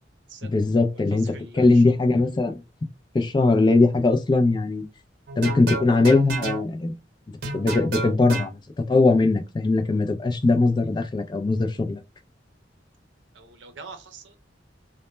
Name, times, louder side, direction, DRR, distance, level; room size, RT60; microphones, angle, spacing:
voice 1, 0.4-2.6 3.1-4.9 5.4-7.0 7.5-12.0, left 3 dB, 25° left, 0.3 m, -20 dB
voice 2, 0.9-2.0 13.3-14.4, right 4 dB, 80° right, 0.6 m, -44 dB
sound 1, 5.3-6.6 7.4-8.5, right 3 dB, 60° right, 0.9 m, -30 dB
2.1 x 2.1 x 3.0 m
head